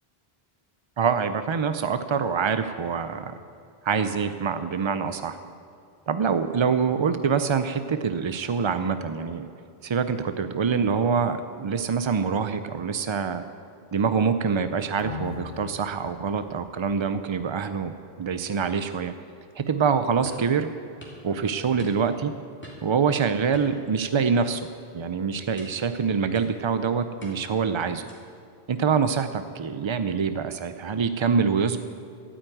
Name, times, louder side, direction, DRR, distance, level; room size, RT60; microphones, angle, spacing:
voice 1, 1.0-3.3 3.8-5.4 6.1-9.5 9.8-13.4 13.9-17.9 18.2-19.1 19.6-20.7 21.2-22.3 22.8-24.7 24.9-28.0 28.7-31.8, right 6 dB, 50° right, 10 dB, 0.3 m, -25 dB
sound 1, 15.0-17.9 18.2-18.3, left 7 dB, 60° left, 1.5 m, -41 dB
sound 2, 20.3-20.5 21.0-21.2 21.8-22.2 22.6-23.0 23.5-24.3 24.6-24.9 25.6-25.9 26.3-26.7 27.2-27.6 28.1-28.4, equal, 10° left, 2.8 m, -45 dB
13.0 x 9.2 x 9.1 m, 2.5 s
omnidirectional pair, 1.1 m